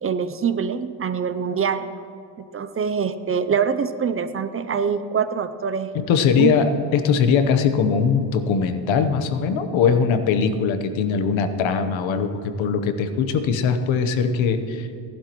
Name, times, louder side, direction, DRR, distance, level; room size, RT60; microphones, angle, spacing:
voice 1, 0.0-1.9 2.5-5.9 6.4-6.5, right 6 dB, 30° right, 12 dB, 0.4 m, -24 dB
voice 2, 5.9-14.9, left 6 dB, 90° left, 9 dB, 1.0 m, -21 dB
17.5 x 12.0 x 3.0 m, 2.6 s
cardioid pair, 125°, 45 cm